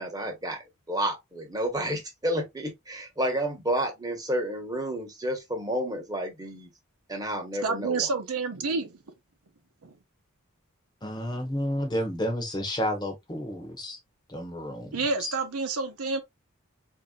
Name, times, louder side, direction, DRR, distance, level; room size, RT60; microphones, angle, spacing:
voice 1, 0.0-6.7 7.1-8.1, right 1 dB, 15° right, 1.1 m, -30 dB
voice 2, 7.6-9.0 9.8-9.9 14.9-16.2, right 4 dB, 80° right, 0.8 m, -29 dB
voice 3, 11.0-14.0 14.3-15.3, equal, 20° left, 0.9 m, -31 dB
4.1 x 2.8 x 2.3 m
head